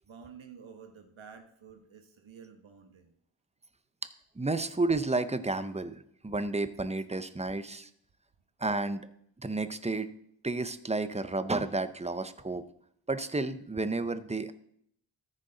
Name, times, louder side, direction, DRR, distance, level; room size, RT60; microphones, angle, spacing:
voice 1, 0.0-3.1, right 6 dB, 85° right, 5 dB, 1.2 m, -51 dB
voice 2, 4.4-7.9 8.6-9.1 9.4-10.1 10.4-12.6 13.1-14.5, right 2 dB, 15° right, 11 dB, 0.6 m, -31 dB
14.0 x 6.5 x 3.9 m, 0.68 s
wide cardioid pair, 80°, 46 cm